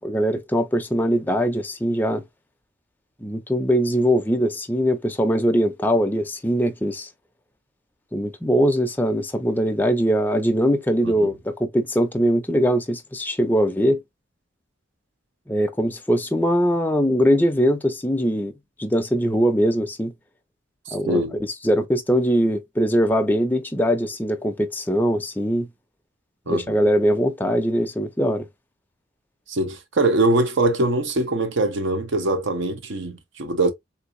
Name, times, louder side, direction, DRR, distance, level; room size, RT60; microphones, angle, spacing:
voice 1, 0.0-2.2 3.2-7.1 8.1-14.0 15.5-18.5 18.8-20.1 20.9-25.7 26.5-28.4, equal, 10° left, 0.4 m, -21 dB
voice 2, 20.9-21.4 26.5-26.8 29.5-33.7, right 2 dB, 65° right, 0.7 m, -23 dB
3.7 x 2.7 x 2.5 m
head